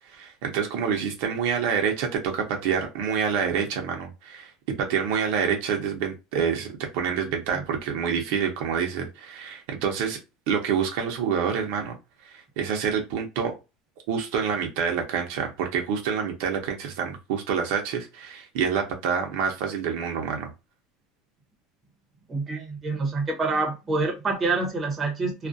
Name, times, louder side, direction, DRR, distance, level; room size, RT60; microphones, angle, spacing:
voice 1, 0.1-4.5 4.8-10.2 10.5-12.0 12.2-13.5 14.1-20.5, right 7 dB, 70° right, 0.6 m, -27 dB
voice 2, 22.3-25.5, right 3 dB, 20° right, 0.7 m, -27 dB
2.4 x 2.1 x 2.5 m
cardioid pair, 155°, 0 cm